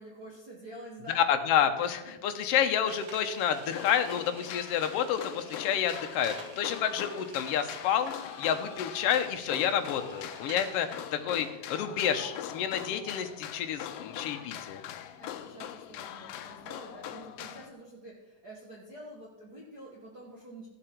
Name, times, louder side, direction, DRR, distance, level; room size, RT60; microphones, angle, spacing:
voice 1, 0.0-1.4 15.2-20.7, right 1 dB, 45° right, -3 dB, 1.4 m, -47 dB
voice 2, 1.1-14.8, left 9 dB, 70° left, 7 dB, 1.5 m, -29 dB
sound 1, 2.9-11.0, right 4 dB, 90° right, 3.0 m, -50 dB
sound 2, 3.7-17.7, left 10 dB, 85° left, 1.4 m, -42 dB
15.0 x 7.7 x 4.5 m, 1.0 s
omnidirectional pair, 3.5 m